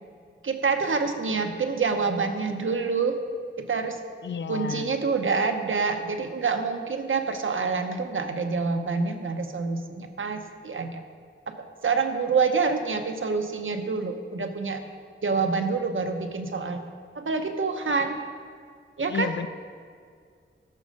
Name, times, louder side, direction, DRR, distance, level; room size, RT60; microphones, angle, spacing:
voice 1, 0.4-3.2 3.6-4.0 4.5-11.0 11.5-14.8 15.2-16.8 17.1-18.2 19.0-19.3, right 4 dB, 70° right, 6 dB, 0.9 m, -27 dB
voice 2, 4.2-4.9 19.1-19.5, left 6 dB, 60° left, 14 dB, 0.4 m, -31 dB
13.0 x 6.3 x 5.3 m, 2.1 s
wide cardioid pair, 85°, 21 cm